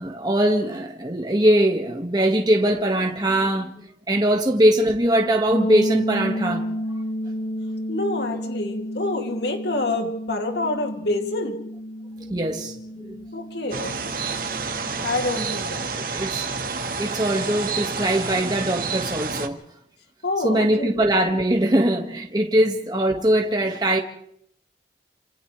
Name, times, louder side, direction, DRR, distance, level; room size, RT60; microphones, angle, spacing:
voice 1, 0.0-3.7 4.1-6.7 12.3-13.2 14.8-14.9 16.0-16.4 17.0-19.6 20.4-24.0, right 1 dB, 25° right, 1.7 m, -21 dB
sound 1, 5.5-15.2, equal, 50° left, 1.1 m, -31 dB
voice 2, 7.9-11.6 13.3-14.0 15.0-15.9 20.2-21.1, left 2 dB, 70° left, 2.6 m, -27 dB
sound 2, 13.7-19.5, right 4 dB, 50° right, 1.6 m, -29 dB
30.0 x 27.0 x 3.3 m
head